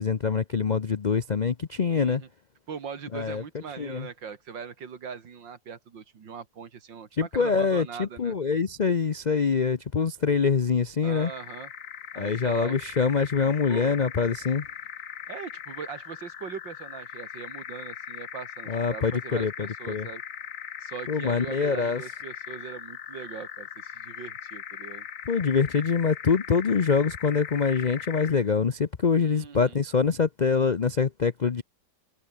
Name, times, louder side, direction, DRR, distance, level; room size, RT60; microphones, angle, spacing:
voice 1, 0.0-2.2 3.1-3.4 3.8-4.1 7.2-11.3 12.2-14.7 18.7-20.1 21.1-22.0 25.3-31.6, left 5 dB, 85° left, 0.3 m, -25 dB
voice 2, 1.9-2.3 2.7-8.3 11.0-11.7 12.1-12.8 13.7-14.0 15.3-20.2 20.8-25.1 29.2-29.8, right 6 dB, 90° right, 2.8 m, -40 dB
sound 1, 11.1-28.5, left 9 dB, 50° left, 1.3 m, -40 dB
omnidirectional pair, 2.0 m